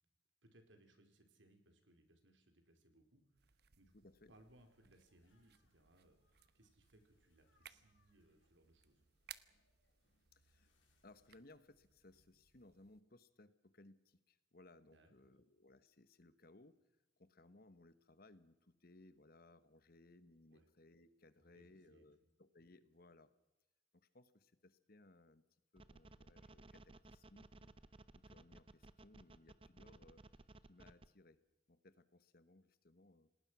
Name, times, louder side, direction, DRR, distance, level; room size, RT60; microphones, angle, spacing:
voice 1, 0.4-3.9 4.3-9.0 14.8-15.3 20.5-20.7 21.4-22.1 22.6-22.7, right 1 dB, 70° right, 6 dB, 4.4 m, -69 dB
sound 1, 3.4-13.0, right 11 dB, 55° right, 1.0 m, -64 dB
voice 2, 3.9-4.3 10.3-10.7 11.0-16.8 17.2-23.3 23.9-25.4 25.7-27.7 28.1-30.2 30.6-31.4 31.7-33.3, left 2 dB, 50° left, 13 dB, 1.3 m, -64 dB
sound 2, 4.3-11.4, left 3 dB, 75° left, 4.9 m, -83 dB
sound 3, 25.8-31.1, right 2 dB, 30° right, 0.7 m, -59 dB
28.5 x 19.0 x 6.2 m, 0.95 s
head